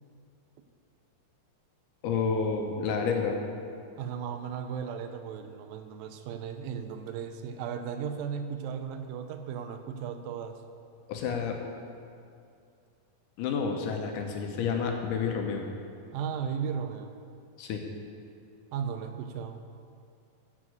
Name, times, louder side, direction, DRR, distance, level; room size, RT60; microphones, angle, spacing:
voice 1, 2.0-3.4 11.1-11.6 13.4-15.7 17.6-17.8, left 5 dB, 75° left, 3 dB, 2.2 m, -29 dB
voice 2, 4.0-10.6 16.1-17.2 18.7-19.6, right 7 dB, 90° right, 7 dB, 2.4 m, -36 dB
9.6 x 6.2 x 7.8 m, 2.4 s
omnidirectional pair, 4.1 m